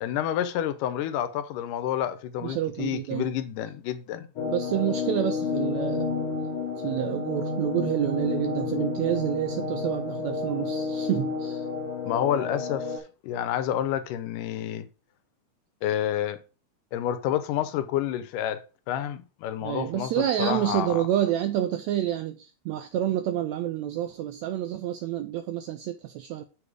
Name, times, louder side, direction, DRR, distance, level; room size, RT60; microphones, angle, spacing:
voice 1, 0.0-4.3 12.1-14.9 15.8-16.4 16.9-21.0, left 10 dB, 85° left, 2.3 m, -29 dB
voice 2, 2.4-3.3 4.4-6.1 6.8-11.7 19.6-26.4, right 12 dB, 85° right, 1.5 m, -28 dB
sound 1, 4.4-13.0, left 4 dB, 55° left, 1.7 m, -30 dB
6.7 x 5.0 x 4.7 m
omnidirectional pair, 3.7 m